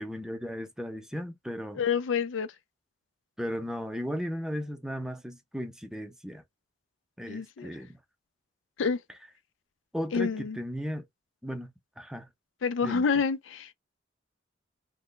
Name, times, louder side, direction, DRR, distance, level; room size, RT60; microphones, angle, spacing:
voice 1, 0.0-1.8 3.4-6.4 7.2-8.0 9.9-11.0 11.4-12.3 12.8-13.0, equal, 5° right, 0.5 m, -36 dB
voice 2, 1.7-2.5 7.3-7.7 8.8-9.0 10.1-10.6 12.6-13.7, left 5 dB, 80° left, 0.4 m, -28 dB
3.3 x 2.2 x 3.8 m
head